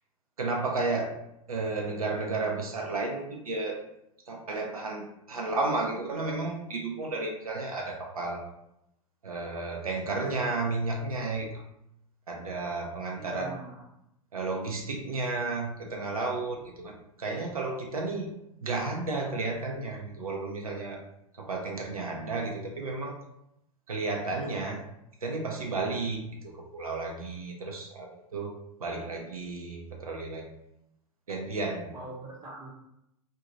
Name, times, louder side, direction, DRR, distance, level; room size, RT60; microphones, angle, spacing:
voice 1, 0.4-1.2 1.5-3.8 4.3-8.4 9.2-11.6 12.3-13.5 14.3-18.3 18.6-21.0 21.4-23.2 23.9-24.8 25.2-28.5 28.8-30.5 31.3-31.9, right 3 dB, 85° right, 0 dB, 0.5 m, -32 dB
voice 2, 13.1-13.9 31.9-32.7, right 2 dB, 20° right, -3 dB, 0.8 m, -41 dB
2.5 x 2.1 x 3.0 m, 0.81 s
figure-of-eight pair, 95°, 18 cm